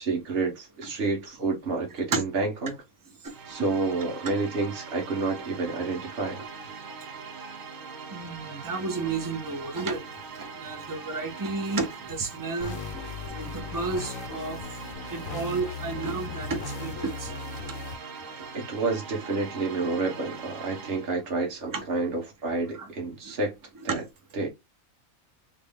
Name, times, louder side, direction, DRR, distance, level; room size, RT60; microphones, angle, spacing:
voice 1, 0.0-2.8 3.5-6.4 18.5-23.6 23.8-24.0 24.3-24.5, right 3 dB, 50° right, 1.4 m, -29 dB
sound 1, 3.3-21.2, right 5 dB, 75° right, 1.2 m, -42 dB
voice 2, 8.1-10.0 10.6-12.8 13.4-14.6 15.1-17.3 21.7-21.8 22.7-22.9 23.9-24.0, right 4 dB, 25° right, 0.5 m, -31 dB
sound 2, 12.6-17.9, left 6 dB, 75° left, 1.0 m, -38 dB
3.9 x 2.1 x 3.5 m
omnidirectional pair, 1.4 m